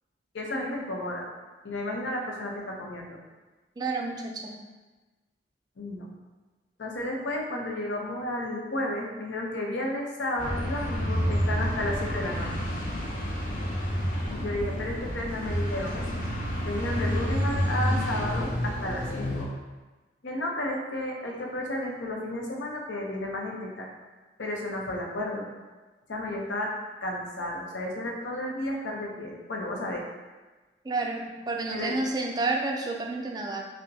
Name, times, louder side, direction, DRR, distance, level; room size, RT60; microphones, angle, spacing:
voice 1, 0.3-1.3 1.6-3.2 5.8-6.1 6.8-12.5 14.3-16.0 16.6-19.5 20.2-23.9 24.4-25.5 26.1-26.7 27.0-30.0 31.7-31.9, left 1 dB, 85° left, -1 dB, 0.6 m, -32 dB
voice 2, 3.8-4.6 30.8-33.6, right 3 dB, 20° right, 1 dB, 0.3 m, -30 dB
sound 1, 10.4-19.5, equal, 45° left, 0.6 m, -29 dB
5.2 x 2.1 x 2.6 m, 1.2 s
head